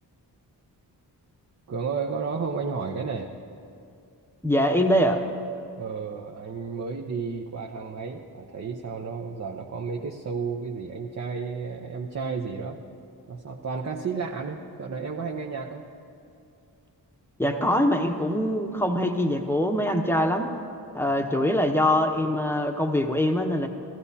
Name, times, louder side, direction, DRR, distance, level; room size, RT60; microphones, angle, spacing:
voice 1, 1.7-3.3 5.8-12.8 13.3-15.8, right 5 dB, 40° right, 0 dB, 0.8 m, -32 dB
voice 2, 4.4-5.2 17.4-20.5 20.9-23.7, equal, 5° left, 3 dB, 0.9 m, -23 dB
14.5 x 14.0 x 2.8 m, 2.5 s
cardioid pair, 65°, 41 cm